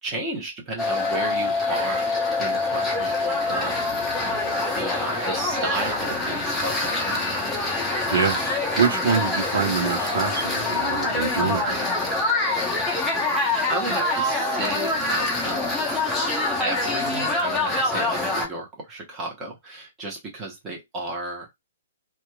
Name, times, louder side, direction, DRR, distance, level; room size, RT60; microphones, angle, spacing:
voice 1, 0.0-4.4 4.7-7.4 10.9-11.0 11.4-12.0 13.7-15.9 16.6-21.5, right 2 dB, 20° right, 1.1 m, -33 dB
sound 1, 0.8-18.5, left 2 dB, 5° left, 0.7 m, -25 dB
voice 2, 8.1-11.6, right 6 dB, 55° right, 0.7 m, -25 dB
2.8 x 2.3 x 2.3 m
figure-of-eight pair, 120°, 0 cm